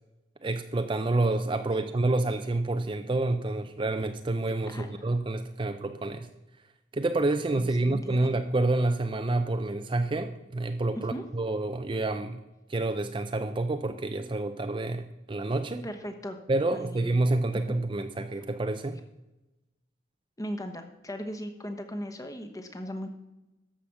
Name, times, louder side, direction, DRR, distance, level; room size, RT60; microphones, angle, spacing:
voice 1, 0.4-6.3 6.9-12.4 12.7-15.9 16.5-19.0, right 2 dB, 25° right, 8 dB, 0.5 m, -28 dB
voice 2, 7.6-8.3 11.0-11.2 15.8-16.4 16.7-17.0 17.7-17.8 20.4-23.1, equal, 20° left, 6 dB, 1.0 m, -37 dB
13.0 x 5.1 x 7.1 m, 1.0 s
head